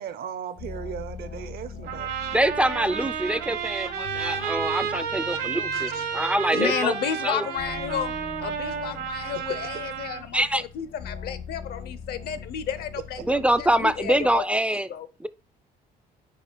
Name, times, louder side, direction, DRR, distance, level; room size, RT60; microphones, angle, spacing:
voice 1, 0.0-2.1, right 9 dB, 65° right, 0.6 m, -36 dB
sound 1, 0.6-14.4, left 5 dB, 85° left, 1.5 m, -42 dB
sound 2, 1.8-10.2, right 7 dB, 80° right, 1.4 m, -31 dB
voice 2, 2.3-7.0 7.2-7.5 10.3-10.6 13.2-14.9 15.2-15.3, right 1 dB, 5° right, 0.3 m, -25 dB
voice 3, 5.7-6.0 6.5-14.4 14.9-15.1, left 9 dB, 70° left, 0.7 m, -32 dB
4.9 x 4.9 x 4.5 m
cardioid pair, 110°, 17 cm